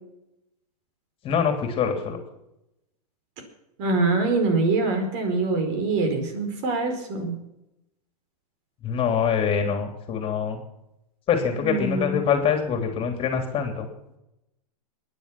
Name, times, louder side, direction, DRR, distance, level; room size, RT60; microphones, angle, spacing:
voice 1, 1.2-2.2 8.8-10.6 11.3-13.9, left 7 dB, 30° left, 5 dB, 3.1 m, -24 dB
voice 2, 3.8-7.4 11.6-12.2, right 3 dB, 50° right, 6 dB, 5.0 m, -24 dB
23.0 x 10.0 x 6.0 m, 0.88 s
hypercardioid pair, 115°, 20 cm